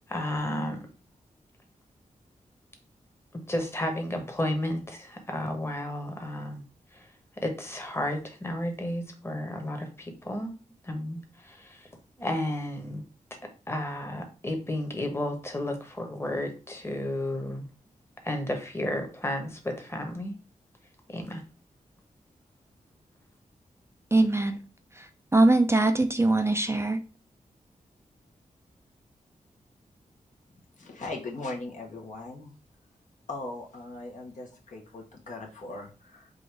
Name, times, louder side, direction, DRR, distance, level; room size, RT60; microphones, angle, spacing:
voice 1, 0.1-0.9 3.5-6.6 6.9-7.1 7.4-10.5 10.8-11.9 12.2-13.0 13.7-17.7 18.2-20.3 21.1-21.4, left 1 dB, 20° left, 1.1 m, -32 dB
voice 2, 24.1-24.6 24.9-27.0, right 2 dB, 20° right, 0.5 m, -22 dB
voice 3, 30.8-32.5 33.3-36.3, left 2 dB, 65° left, 1.2 m, -39 dB
3.9 x 2.6 x 4.6 m
cardioid pair, 75°, 14 cm